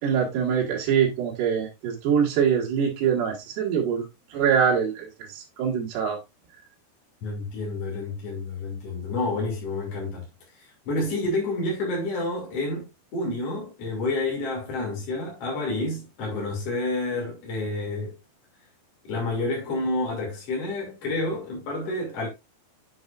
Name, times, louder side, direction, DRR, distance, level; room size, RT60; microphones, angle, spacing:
voice 1, 0.0-6.2, right 7 dB, 70° right, 4.0 m, -24 dB
voice 2, 7.2-10.2 10.6-18.1 19.0-22.3, left 2 dB, 40° left, 3.1 m, -29 dB
7.8 x 7.7 x 2.5 m
omnidirectional pair, 4.9 m